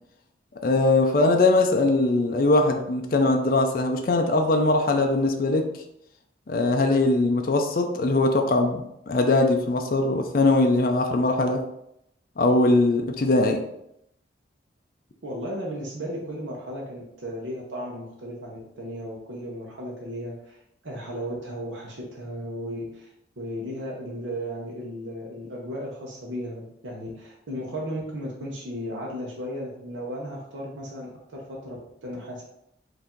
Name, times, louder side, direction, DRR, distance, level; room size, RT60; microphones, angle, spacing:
voice 1, 0.6-5.7 6.5-11.6 12.4-13.6, left 2 dB, 50° left, 4 dB, 0.4 m, -21 dB
voice 2, 15.2-20.6 20.8-32.4, equal, 90° right, -3 dB, 0.9 m, -35 dB
4.7 x 2.6 x 3.7 m, 0.78 s
head